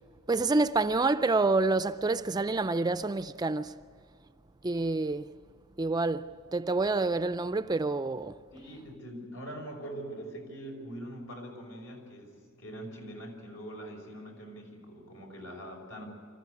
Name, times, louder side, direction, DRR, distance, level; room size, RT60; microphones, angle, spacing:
voice 1, 0.3-3.8 4.6-5.3 5.8-8.3, right 3 dB, 20° right, 0.4 m, -28 dB
voice 2, 8.5-16.1, right 1 dB, 75° left, 5.9 m, -43 dB
25.0 x 15.0 x 8.3 m
head